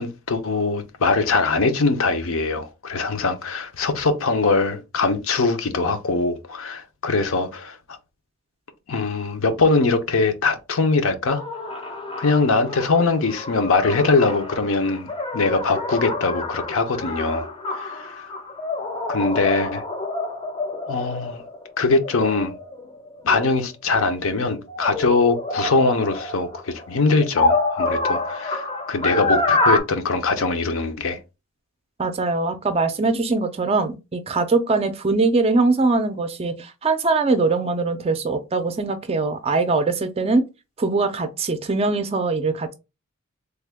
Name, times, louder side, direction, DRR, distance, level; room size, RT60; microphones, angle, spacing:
voice 1, 0.0-8.0 8.9-11.4 11.7-11.8 12.2-17.5 17.7-18.3 19.1-19.8 20.8-21.4 21.8-22.5 23.2-31.2, left 3 dB, 65° left, 0.6 m, -22 dB
sound 1, 11.3-24.0 24.5-29.8, left 2 dB, 25° left, 0.5 m, -27 dB
voice 2, 32.0-40.5 40.8-42.7, right 3 dB, 25° right, 0.4 m, -22 dB
3.3 x 2.2 x 3.3 m
head